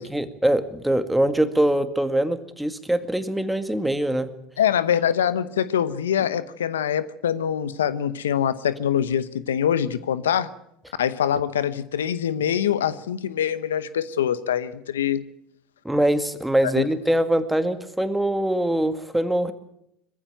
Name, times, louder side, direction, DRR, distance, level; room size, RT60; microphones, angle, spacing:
voice 1, 0.0-4.3 15.8-19.5, right 1 dB, 5° right, 10 dB, 2.0 m, -23 dB
voice 2, 4.6-10.5 11.0-15.2 16.7-16.9, left 9 dB, 85° left, 15 dB, 0.9 m, -24 dB
21.5 x 15.0 x 9.1 m, 0.78 s
hypercardioid pair, 75°, 0 cm